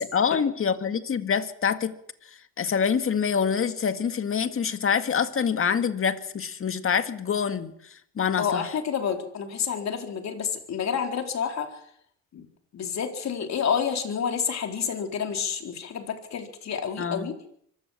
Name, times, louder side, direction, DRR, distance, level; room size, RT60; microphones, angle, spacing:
voice 1, 0.0-2.0 2.6-8.7 17.0-17.3, left 6 dB, 45° left, 9 dB, 2.0 m, -26 dB
voice 2, 8.4-11.8 12.3-12.5 12.7-17.3, left 7 dB, 60° left, 4 dB, 4.2 m, -29 dB
24.5 x 16.0 x 7.4 m, 0.67 s
cardioid pair, 90°, 30 cm